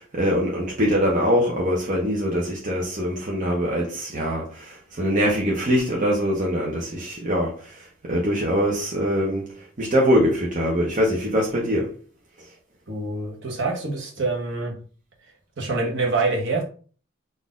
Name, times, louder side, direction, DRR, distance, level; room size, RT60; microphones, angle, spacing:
voice 1, 0.0-11.9, equal, 35° right, 0.8 m, -23 dB
voice 2, 12.9-14.8 15.6-16.6, right 3 dB, 60° right, 1.1 m, -25 dB
4.0 x 2.6 x 3.7 m
head